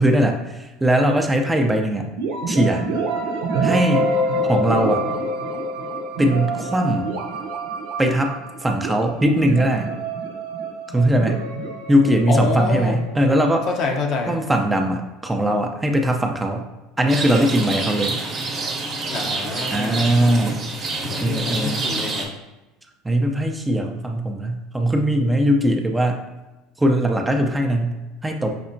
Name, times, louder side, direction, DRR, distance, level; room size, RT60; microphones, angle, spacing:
voice 1, 0.0-2.1 2.5-2.9 3.6-4.1 4.4-5.0 6.2-7.0 8.0-8.3 8.6-9.9 10.9-11.4 11.9-13.7 14.3-16.6 17.0-18.2 19.7-20.6 21.2-21.9 23.0-26.2 26.8-28.6, right 1 dB, 10° right, 3 dB, 0.5 m, -20 dB
sound 1, 2.2-13.9, right 1 dB, 75° right, 0.6 m, -26 dB
voice 2, 12.3-13.0 13.7-14.3 19.1-20.1 21.1-22.3, left 4 dB, 55° left, 2 dB, 0.7 m, -26 dB
Rain, 17.1-22.3, right 3 dB, 40° right, 0.9 m, -27 dB
5.9 x 2.1 x 2.7 m, 1.1 s
hypercardioid pair, 80°, 0 cm